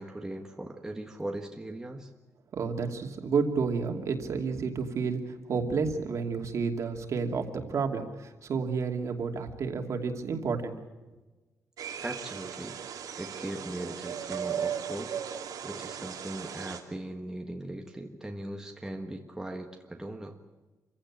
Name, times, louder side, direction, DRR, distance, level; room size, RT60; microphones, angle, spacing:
voice 1, 0.0-2.1 12.0-12.8 13.2-15.2 15.6-20.4, right 1 dB, 10° right, 2 dB, 1.5 m, -39 dB
voice 2, 2.5-10.8, right 5 dB, 55° right, 4 dB, 2.7 m, -31 dB
sound 1, 11.8-16.8, right 8 dB, 85° right, 2.9 m, -37 dB
27.0 x 16.0 x 8.8 m, 1.2 s
wide cardioid pair, 165°, 6 cm